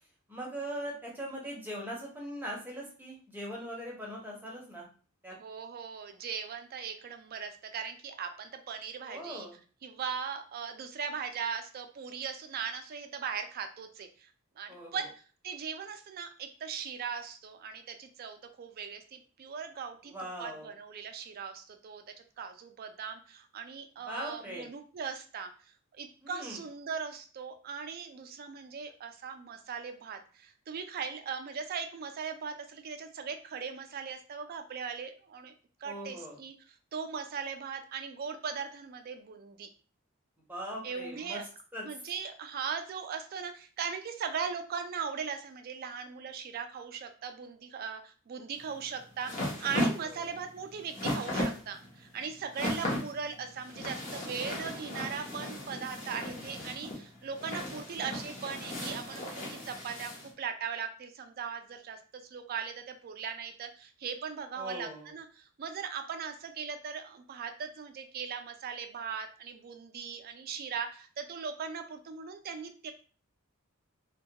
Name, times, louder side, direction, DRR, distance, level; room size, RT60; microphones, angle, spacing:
voice 1, 0.3-4.9 5.2-5.3 9.1-9.6 14.7-15.0 20.0-20.7 24.1-24.7 26.2-26.6 35.8-36.4 40.5-41.4 41.7-41.8 50.0-50.3 64.6-65.1, equal, 10° right, -3 dB, 0.6 m, -40 dB
voice 2, 5.4-9.5 9.8-14.3 14.6-15.1 15.4-20.1 20.4-22.0 22.4-25.5 25.9-35.5 35.8-36.5 36.9-39.7 40.8-41.4 41.8-72.9, right 6 dB, 45° right, 7 dB, 0.3 m, -39 dB
sound 1, 48.6-60.3, left 1 dB, 35° left, 0.7 m, -36 dB
2.2 x 2.2 x 2.7 m, 0.39 s
head